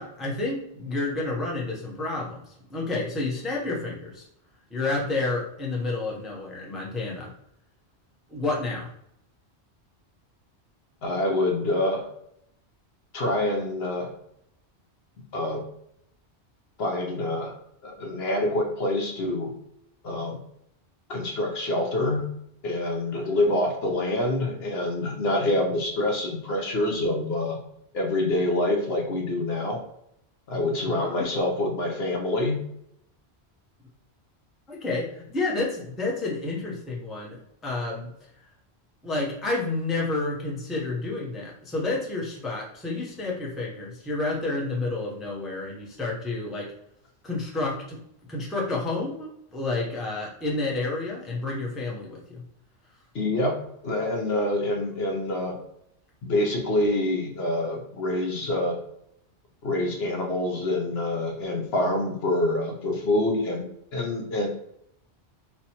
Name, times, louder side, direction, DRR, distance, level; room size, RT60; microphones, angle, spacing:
voice 1, 0.0-4.2 4.7-7.3 8.3-8.9 30.8-31.3 34.7-38.1 39.0-46.7 47.2-48.0 48.3-52.4, left 2 dB, ahead, -3 dB, 0.5 m, -30 dB
voice 2, 11.0-12.0 13.1-14.1 15.3-15.6 16.8-17.5 17.8-19.5 20.0-20.4 21.1-22.3 22.6-27.6 27.9-29.8 30.5-32.6 53.1-53.6 53.8-55.6 56.2-58.8 59.6-63.7 63.9-64.5, left 1 dB, 70° left, 1 dB, 1.0 m, -26 dB
4.3 x 2.2 x 2.8 m, 0.76 s
omnidirectional pair, 1.1 m